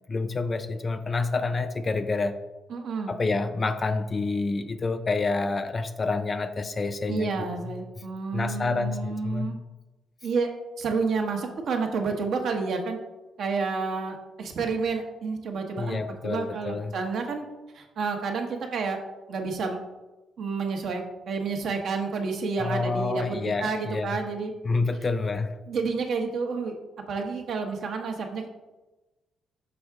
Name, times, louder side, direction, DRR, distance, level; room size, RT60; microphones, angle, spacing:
voice 1, 0.1-2.4 3.1-7.3 7.6-7.7 8.3-9.5 15.8-16.9 22.6-24.2 24.6-25.6, left 3 dB, 35° left, 8 dB, 0.4 m, -28 dB
voice 2, 2.7-3.2 7.1-9.6 10.2-10.5 10.8-13.0 13.4-17.5 17.7-19.0 19.3-19.8 20.4-24.5 25.7-26.7 27.1-28.5, right 4 dB, 65° right, 3 dB, 0.9 m, -30 dB
6.1 x 4.6 x 3.5 m, 1.1 s
cardioid pair, 90°, 0 cm